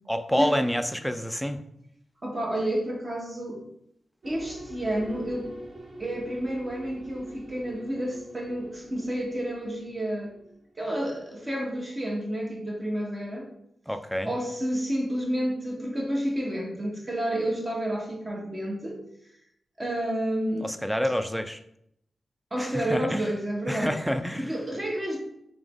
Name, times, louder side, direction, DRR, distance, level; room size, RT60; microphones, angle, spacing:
voice 1, 0.1-1.6 13.9-14.3 20.6-21.6 22.6-23.3 23.7-24.5, equal, ahead, 8 dB, 0.3 m, -28 dB
voice 2, 2.2-3.6 4.2-5.5 6.0-10.3 10.8-13.5 14.2-19.0 19.8-20.7 22.5-24.0 24.4-25.2, right 1 dB, 30° right, -2 dB, 1.0 m, -30 dB
sound 1, 4.2-11.3, right 1 dB, 45° right, 0.6 m, -46 dB
3.6 x 3.0 x 3.5 m, 0.75 s
wide cardioid pair, 105°, 0 cm